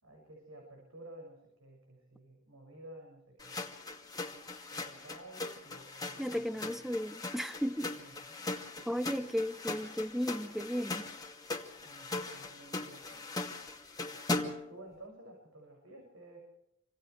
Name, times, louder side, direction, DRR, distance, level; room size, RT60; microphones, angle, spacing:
voice 1, 0.0-3.6 4.7-6.7 8.0-9.0 11.8-13.3 14.3-16.4, right 1 dB, 70° right, 7.0 m, -53 dB
sound 1, 3.4-14.7, left 2 dB, 20° left, 2.3 m, -40 dB
voice 2, 6.2-8.0 8.9-11.1, equal, ahead, 0.9 m, -35 dB
28.5 x 26.0 x 3.4 m
head